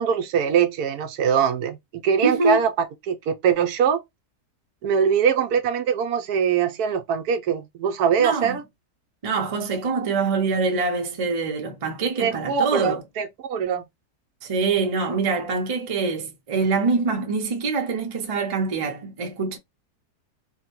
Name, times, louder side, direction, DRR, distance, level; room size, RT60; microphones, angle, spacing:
voice 1, 0.0-2.7 3.1-4.0 4.8-8.6 12.2-13.8, right 7 dB, 75° right, 1.1 m, -22 dB
voice 2, 2.2-2.6 8.2-8.6 9.2-13.0 14.4-19.6, right 4 dB, 45° right, 0.4 m, -24 dB
3.5 x 2.1 x 2.9 m
omnidirectional pair, 1.7 m